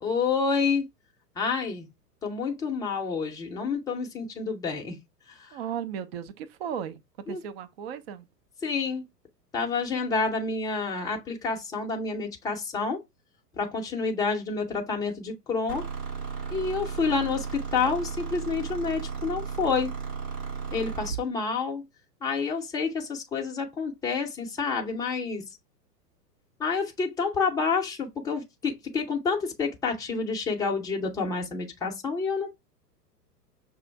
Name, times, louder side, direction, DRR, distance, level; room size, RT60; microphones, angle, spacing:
voice 1, 0.0-0.9 1.4-1.9 2.2-5.0 5.3-5.6 7.3-7.4 8.6-9.0 9.5-13.0 13.5-15.9 16.5-19.9 20.7-21.8 22.2-25.4 26.6-32.5, left 4 dB, 5° left, 0.6 m, -29 dB
voice 2, 5.5-7.0 7.3-8.3, right 8 dB, 40° right, 0.6 m, -35 dB
sound 1, 15.7-21.2, right 5 dB, 85° right, 3.0 m, -34 dB
6.2 x 2.5 x 3.3 m
figure-of-eight pair, 105°, 49 cm